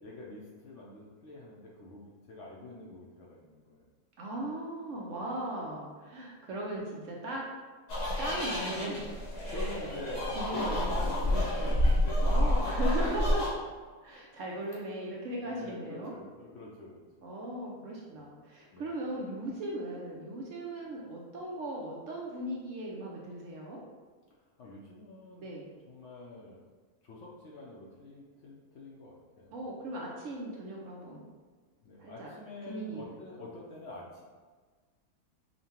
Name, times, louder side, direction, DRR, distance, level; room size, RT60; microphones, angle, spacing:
voice 1, 0.0-3.8 8.2-8.5 9.5-12.5 15.3-17.3 18.2-18.4 18.7-19.0 24.6-25.5 25.9-26.6 27.0-29.5 31.8-34.2, left 2 dB, 65° left, -4 dB, 0.8 m, -46 dB
voice 2, 4.2-7.5 8.2-9.1 9.5-9.9 10.4-13.5 14.0-16.1 17.2-23.8 25.4-25.7 29.5-31.3 32.0-32.3 32.7-33.0, right 1 dB, 65° right, -2 dB, 0.8 m, -38 dB
sound 1, 7.9-13.5, left 1 dB, 90° left, 1.7 m, -29 dB
5.4 x 2.2 x 2.8 m, 1.4 s
omnidirectional pair, 1.6 m